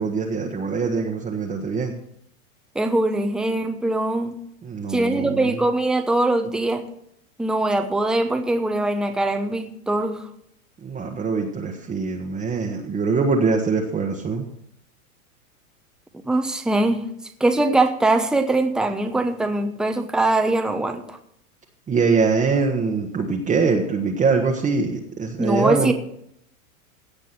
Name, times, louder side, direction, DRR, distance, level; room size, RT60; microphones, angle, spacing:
voice 1, 0.0-1.9 4.6-5.6 10.8-14.5 21.9-25.9, right 4 dB, 20° right, 0 dB, 1.3 m, -23 dB
voice 2, 2.7-4.4 4.9-6.8 7.4-10.2 16.2-17.1 17.4-21.2 25.4-25.9, right 2 dB, ahead, 6 dB, 0.9 m, -22 dB
17.0 x 6.0 x 6.0 m, 0.72 s
hypercardioid pair, 130°, 43 cm